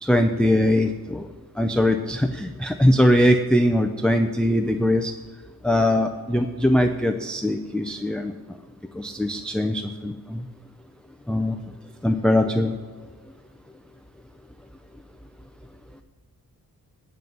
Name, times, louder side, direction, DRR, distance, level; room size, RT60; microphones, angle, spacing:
voice 1, 0.0-1.3 1.6-5.1 5.6-8.3 9.0-10.5 11.3-11.6 12.0-12.8, left 1 dB, ahead, 6 dB, 0.5 m, -21 dB
9.7 x 5.5 x 7.7 m, 1.5 s
wide cardioid pair, 115°, 37 cm